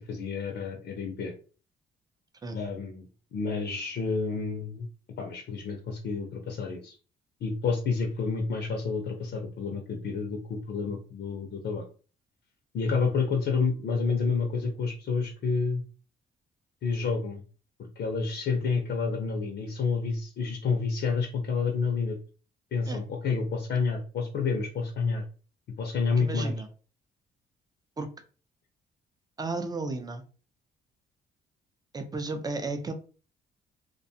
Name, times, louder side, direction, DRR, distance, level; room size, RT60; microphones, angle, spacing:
voice 1, 0.0-1.3 2.5-3.0 3.3-4.9 5.2-7.0 7.4-11.9 12.7-15.8 16.8-17.4 17.8-22.2 22.7-25.2 25.8-26.5, left 4 dB, 60° left, 3 dB, 0.6 m, -29 dB
voice 2, 26.2-26.7 28.0-28.1 29.4-30.2 31.9-32.9, right 3 dB, 20° right, 7 dB, 0.5 m, -33 dB
2.5 x 2.2 x 2.6 m, 0.37 s
cardioid pair, 90°, 20 cm